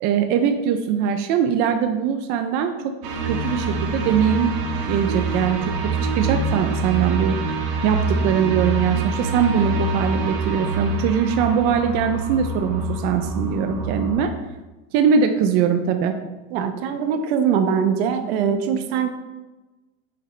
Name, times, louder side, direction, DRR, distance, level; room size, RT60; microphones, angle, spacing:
voice 1, 0.0-2.7 3.2-4.5 4.9-14.3 14.9-16.1, right 7 dB, 30° right, 6 dB, 0.4 m, -21 dB
sound 1, 3.0-14.2, right 3 dB, 45° right, 1.3 m, -25 dB
voice 2, 16.5-19.1, right 7 dB, 65° right, 7 dB, 1.0 m, -22 dB
9.0 x 6.6 x 3.2 m, 1.1 s
supercardioid pair, 170°, 34 cm